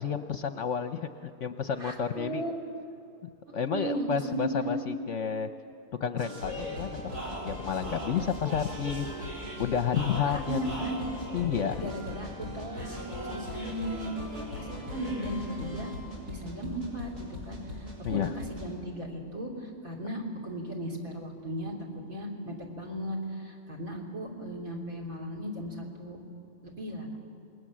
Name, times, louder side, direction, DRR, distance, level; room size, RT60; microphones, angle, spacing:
voice 1, 0.0-2.4 3.2-5.5 6.0-7.2 7.4-10.8 11.3-11.9 18.0-18.3, left 7 dB, 60° left, 9 dB, 0.9 m, -31 dB
voice 2, 1.8-2.5 3.7-4.8 10.3-11.0 11.8-15.9 16.3-21.7 22.1-26.2 26.6-27.2, right 1 dB, 60° right, 2 dB, 3.9 m, -36 dB
sound 1, 6.2-18.7, left 1 dB, 75° right, 5.6 m, -39 dB
27.0 x 21.0 x 7.5 m, 2.6 s
omnidirectional pair, 1.7 m